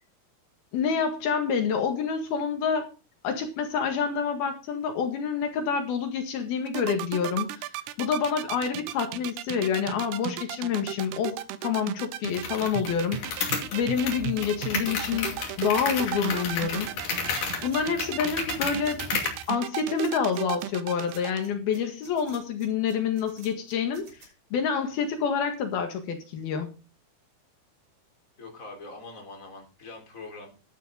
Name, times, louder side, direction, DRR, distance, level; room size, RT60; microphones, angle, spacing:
voice 1, 0.7-2.9 3.2-7.7 8.0-13.5 13.7-16.9 17.6-19.0 19.5-24.1 24.5-26.7, left 6 dB, 75° left, 5 dB, 3.6 m, -27 dB
sound 1, 6.7-21.4, right 12 dB, 90° right, 2.9 m, -35 dB
sound 2, 12.3-19.4, left 5 dB, 55° left, 3.8 m, -32 dB
sound 3, 17.1-24.3, right 3 dB, 55° right, 7.2 m, -52 dB
voice 2, 28.4-30.5, left 3 dB, 20° left, 2 dB, 3.9 m, -43 dB
12.5 x 11.0 x 3.7 m, 0.31 s
omnidirectional pair, 4.5 m